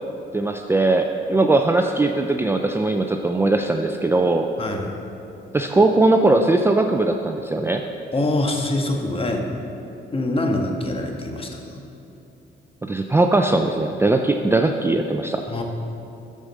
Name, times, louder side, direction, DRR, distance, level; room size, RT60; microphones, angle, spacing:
voice 1, 0.3-4.5 5.5-7.8 12.8-15.4, right 2 dB, 10° right, 4 dB, 0.4 m, -19 dB
voice 2, 4.6-4.9 8.1-9.5 10.1-11.8 15.5-15.6, left 2 dB, 30° left, 2 dB, 1.4 m, -24 dB
12.0 x 4.9 x 6.3 m, 2.8 s
cardioid pair, 90°, 20 cm